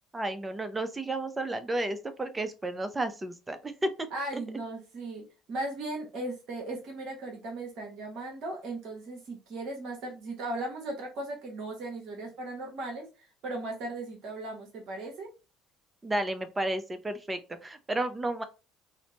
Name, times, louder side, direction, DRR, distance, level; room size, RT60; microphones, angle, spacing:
voice 1, 0.1-3.9 16.0-18.4, right 1 dB, 20° right, 0.6 m, -32 dB
voice 2, 4.1-15.3, right 2 dB, 55° right, 1.1 m, -37 dB
4.2 x 2.1 x 2.9 m
hypercardioid pair, 60°, 0 cm